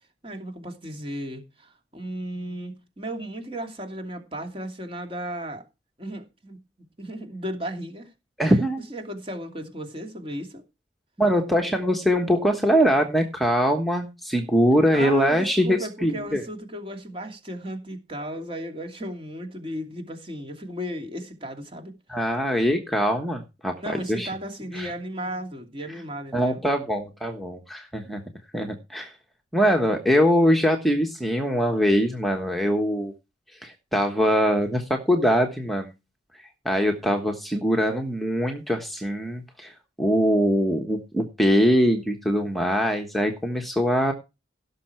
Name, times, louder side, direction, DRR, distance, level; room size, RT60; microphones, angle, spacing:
voice 1, 0.2-5.6 6.0-6.6 7.0-8.1 8.9-10.6 14.7-21.9 23.8-26.6, right 1 dB, 30° right, 2.7 m, -35 dB
voice 2, 8.4-8.9 11.2-16.4 22.1-24.3 24.7-24.9 26.3-28.2 28.5-29.1 29.5-33.1 33.6-35.9 36.6-44.1, equal, ahead, 1.3 m, -22 dB
17.0 x 6.7 x 4.6 m
head